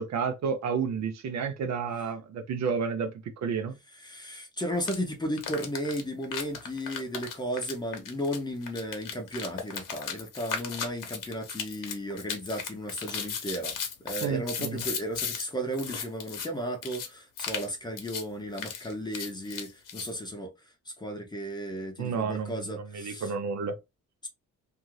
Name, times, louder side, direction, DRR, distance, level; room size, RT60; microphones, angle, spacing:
voice 1, 0.0-3.7 14.2-14.8 22.0-23.8, right 6 dB, 55° right, 0.5 m, -31 dB
voice 2, 4.0-13.7 14.0-20.5 21.0-23.3, equal, 15° left, 0.6 m, -34 dB
sound 1, 4.8-5.0 5.4-15.4 15.7-16.5 16.8-17.1 17.4-17.7 18.0-18.2 18.5-20.1, left 7 dB, 80° left, 0.9 m, -36 dB
2.7 x 2.4 x 3.0 m
wide cardioid pair, 165°, 32 cm